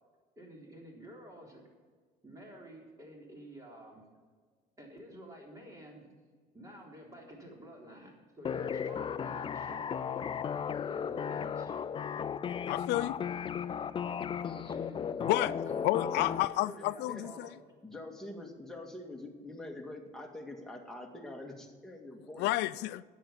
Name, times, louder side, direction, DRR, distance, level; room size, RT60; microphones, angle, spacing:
voice 1, 0.4-1.6 2.2-4.0 4.8-6.1 6.5-10.2 10.8-11.8 14.5-17.6 19.2-19.3, equal, 20° right, 3.7 m, -50 dB
sound 1, 8.4-16.4, left 7 dB, 30° left, 0.4 m, -35 dB
voice 2, 12.7-13.2 15.3-15.5 15.8-17.5 22.4-23.0, left 17 dB, 85° left, 0.4 m, -30 dB
voice 3, 17.8-22.5, left 1 dB, 5° left, 2.0 m, -45 dB
9.9 x 8.2 x 8.7 m
cardioid pair, 110°, 17 cm